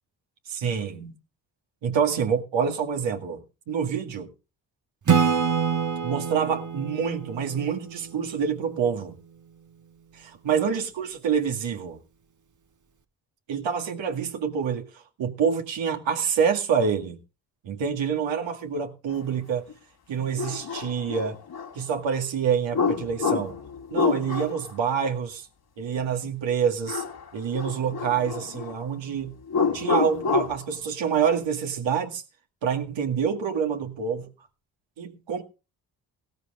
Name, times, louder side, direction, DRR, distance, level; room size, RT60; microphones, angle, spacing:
voice 1, 0.5-1.2 1.8-4.3 6.0-9.2 10.1-12.0 13.5-14.9 15.2-17.2 17.6-19.7 20.1-21.4 21.8-23.6 23.9-25.5 25.8-27.0 27.3-29.3 29.7-32.2 32.6-34.3 35.0-35.4, right 7 dB, 65° right, 2.0 m, -27 dB
Acoustic guitar / Strum, 5.1-8.6, right 6 dB, 40° right, 1.4 m, -26 dB
sound 1, 19.7-19.8 20.4-21.7 22.7-24.7 26.9-27.3 27.5-28.8 29.5-30.6, left 5 dB, 50° left, 2.3 m, -27 dB
17.5 x 13.0 x 2.4 m
hypercardioid pair, 45°, 48 cm